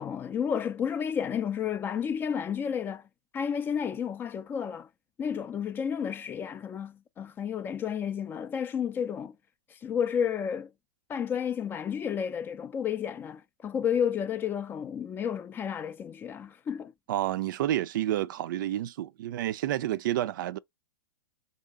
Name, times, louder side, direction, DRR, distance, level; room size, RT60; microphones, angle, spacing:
voice 1, 0.0-3.1 3.3-4.9 5.2-9.4 9.7-10.7 11.1-16.9, left 8 dB, 15° left, 0.3 m, -31 dB
voice 2, 17.1-20.6, right 13 dB, 60° right, 0.4 m, -29 dB
4.3 x 2.8 x 3.5 m
hypercardioid pair, 120°, 12 cm